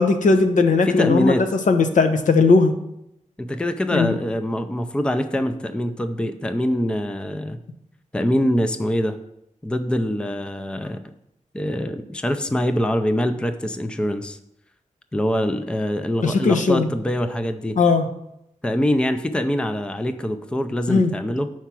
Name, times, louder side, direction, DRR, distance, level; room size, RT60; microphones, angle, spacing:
voice 1, 0.0-2.7 3.9-4.2 16.2-16.9 17.8-18.1 20.9-21.1, left 4 dB, 80° left, 6 dB, 0.8 m, -18 dB
voice 2, 0.8-1.4 3.4-7.6 8.1-9.2 9.6-11.0 11.5-14.4 15.1-17.8 18.6-21.5, equal, 10° left, 9 dB, 0.4 m, -24 dB
5.7 x 4.6 x 6.0 m, 0.80 s
wide cardioid pair, 140°, 13 cm